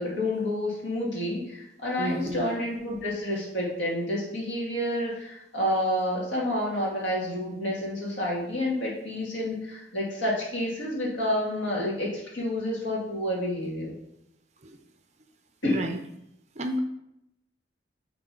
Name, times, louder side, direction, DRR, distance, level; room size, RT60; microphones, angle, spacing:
voice 1, 0.0-13.9 15.6-15.8, left 1 dB, 90° left, -3 dB, 2.3 m, -29 dB
voice 2, 2.0-2.6 14.6-14.8 15.7-16.0 16.6-16.8, right 1 dB, 40° right, 6 dB, 0.5 m, -31 dB
8.9 x 3.9 x 3.8 m, 0.81 s
head